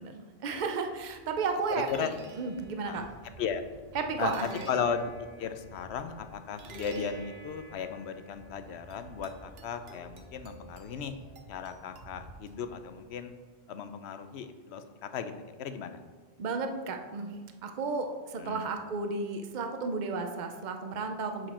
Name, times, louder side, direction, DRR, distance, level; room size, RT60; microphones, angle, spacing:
voice 1, 0.0-3.0 3.9-4.7 16.4-17.3 17.6-21.5, right 4 dB, 50° right, 5 dB, 0.8 m, -33 dB
sound 1, 0.9-13.0, right 2 dB, 70° right, 1.0 m, -49 dB
voice 2, 4.7-5.0 5.4-11.1 11.5-13.3 13.7-15.3 15.6-16.0 18.4-18.7, left 7 dB, 90° left, 9 dB, 0.9 m, -36 dB
7.6 x 4.9 x 4.3 m, 1.5 s
omnidirectional pair, 1.1 m